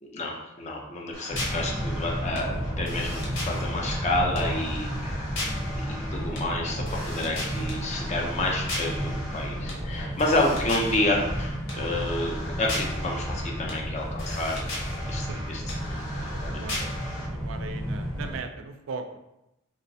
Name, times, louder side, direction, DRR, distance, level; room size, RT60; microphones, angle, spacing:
voice 1, 0.0-5.3 5.9-9.0 9.3-14.6 15.1-16.9, left 1 dB, 35° left, -1 dB, 0.5 m, -30 dB
sound 1, 1.1-17.2, left 1 dB, 65° left, 1.1 m, -37 dB
sound 2, 1.3-18.4, equal, 5° left, 0.8 m, -32 dB
voice 2, 15.3-16.9 17.2-19.2, right 4 dB, 70° right, 7 dB, 0.3 m, -40 dB
3.8 x 2.2 x 2.6 m, 0.88 s
head